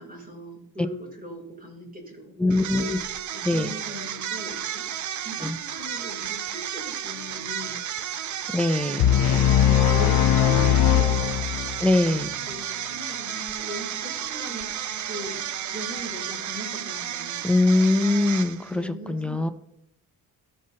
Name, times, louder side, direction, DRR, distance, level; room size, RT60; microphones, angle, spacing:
voice 1, 0.0-2.7 3.3-4.9 5.2-7.8 8.9-11.2 12.5-14.7 15.0-15.4 15.7-17.5 18.6-19.5, equal, 20° right, -1 dB, 3.2 m, -40 dB
voice 2, 2.4-3.0 3.4-3.7 5.4-5.6 8.5-9.0 11.8-12.3 17.4-19.5, left 2 dB, 5° left, 9 dB, 0.5 m, -22 dB
sound 1, 2.5-18.8, right 9 dB, 50° right, 0.5 m, -33 dB
sound 2, 9.0-11.9, left 10 dB, 65° left, 0.6 m, -20 dB
15.0 x 6.5 x 2.8 m, 0.77 s
cardioid pair, 105°, 38 cm